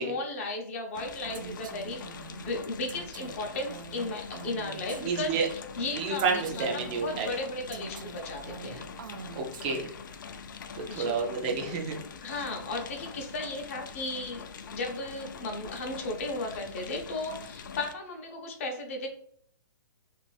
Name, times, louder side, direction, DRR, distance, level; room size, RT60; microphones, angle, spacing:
voice 1, 0.0-2.0 2.3-5.4 5.8-6.2 6.5-8.9 10.9-11.2 12.2-14.4 14.7-19.1, left 2 dB, 40° left, 2 dB, 0.7 m, -35 dB
sound 1, 0.9-17.9, left 6 dB, 75° left, 0.4 m, -44 dB
Female speech woman speaking, 1.3-5.6 6.2-10.2, right 6 dB, 90° right, 0.5 m, -45 dB
voice 2, 5.0-5.5 5.9-7.3 9.3-9.9 10.7-12.0, right 4 dB, 30° right, 0 dB, 0.5 m, -30 dB
2.6 x 2.5 x 3.1 m, 0.63 s
hypercardioid pair, 160°, 11 cm